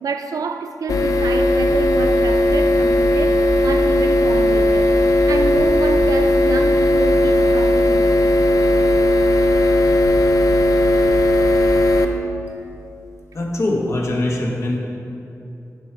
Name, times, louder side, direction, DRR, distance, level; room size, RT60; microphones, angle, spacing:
voice 1, 0.0-5.0 5.3-8.2, right 5 dB, 80° right, 0.5 m, -28 dB
sound 1, 0.9-12.1, left 1 dB, 75° left, 0.6 m, -16 dB
voice 2, 13.3-14.8, left 1 dB, 55° left, 1.4 m, -22 dB
10.5 x 6.3 x 4.7 m
wide cardioid pair, 100°, 6 cm